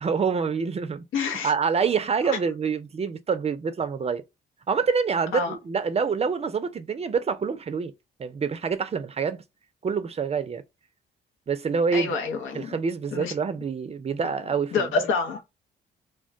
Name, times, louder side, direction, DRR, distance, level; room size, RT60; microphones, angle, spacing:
voice 1, 0.0-4.2 4.7-7.9 8.2-9.4 9.8-10.6 11.5-12.2 12.5-14.9, right 5 dB, 30° right, 0.4 m, -26 dB
voice 2, 1.1-1.5 2.3-2.4 5.3-5.6 11.9-12.7 13.1-13.3 14.7-15.4, left 4 dB, 85° left, 0.9 m, -27 dB
2.2 x 2.1 x 3.6 m
cardioid pair, 90°, 20 cm